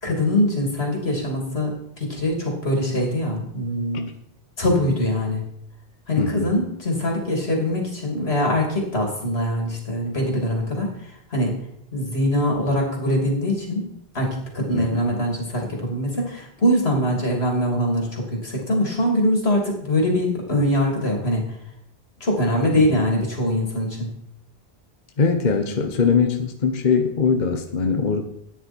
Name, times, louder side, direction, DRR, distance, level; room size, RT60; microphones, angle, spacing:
voice 1, 0.0-4.1 4.6-5.4 6.1-10.9 11.3-11.6 11.9-13.9 14.1-21.5 22.2-24.1, left 1 dB, 90° left, 0 dB, 3.5 m, -23 dB
voice 2, 6.2-6.5 14.7-15.0 22.7-23.0 25.2-28.2, left 5 dB, 50° left, 5 dB, 1.1 m, -22 dB
13.5 x 9.8 x 4.5 m, 0.74 s
omnidirectional pair, 1.0 m